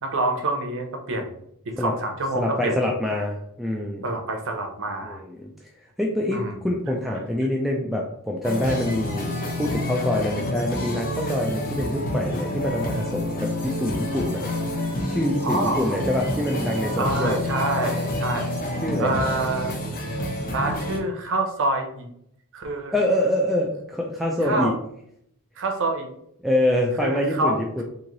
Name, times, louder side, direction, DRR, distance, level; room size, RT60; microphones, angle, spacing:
voice 1, 0.0-1.3 1.6-2.8 4.0-5.2 6.3-6.6 15.4-16.0 17.0-18.5 19.0-19.7 20.5-22.1 22.5-22.9 24.4-24.8 25.6-26.1 27.0-27.8, right 2 dB, 60° right, 4 dB, 0.7 m, -26 dB
voice 2, 2.4-4.0 5.0-5.5 6.0-14.5 15.1-17.4 18.8-19.2 22.9-24.7 26.4-27.8, left 1 dB, ahead, -1 dB, 0.3 m, -25 dB
sound 1, 8.4-21.0, left 1 dB, 40° left, 0.6 m, -28 dB
3.1 x 2.7 x 3.8 m, 0.74 s
head